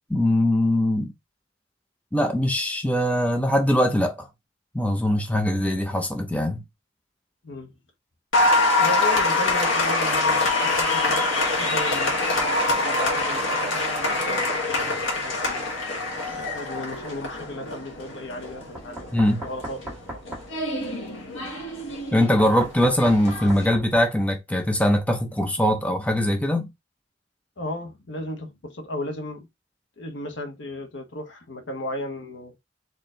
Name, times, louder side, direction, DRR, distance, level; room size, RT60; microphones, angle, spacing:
voice 1, 0.1-1.1 2.1-4.3 4.7-6.6 19.1-19.4 22.1-26.7, left 1 dB, 5° left, 0.7 m, -22 dB
Applause, 8.3-23.7, left 2 dB, 85° left, 1.7 m, -25 dB
voice 2, 8.8-11.3 11.6-15.7 16.3-19.1 19.4-20.4 27.6-29.5 30.0-32.5, left 1 dB, 65° left, 1.2 m, -35 dB
Knock, 18.7-20.5 22.4-24.1, right 1 dB, 10° right, 2.0 m, -37 dB
4.4 x 3.1 x 3.9 m
head